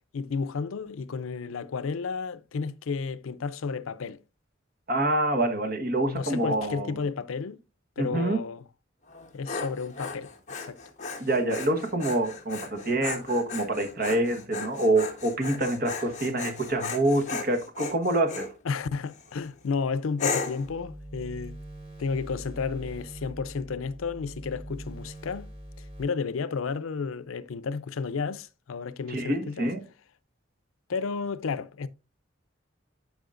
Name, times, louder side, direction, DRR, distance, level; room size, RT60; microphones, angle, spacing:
voice 1, 0.1-4.2 6.0-7.6 8.0-8.6 9.3-10.3 10.6-10.8 18.7-21.6 22.0-25.5 25.8-29.7 30.9-31.9, left 5 dB, 85° left, 0.5 m, -32 dB
voice 2, 4.9-7.0 8.0-8.4 11.2-18.5 29.1-29.8, right 1 dB, 45° right, 1.2 m, -26 dB
Dog, 9.1-18.5 19.1-19.5 20.2-20.7, left 4 dB, 35° left, 1.3 m, -36 dB
sound 1, 20.6-26.0, right 1 dB, 30° right, 3.9 m, -43 dB
11.5 x 4.9 x 2.5 m
head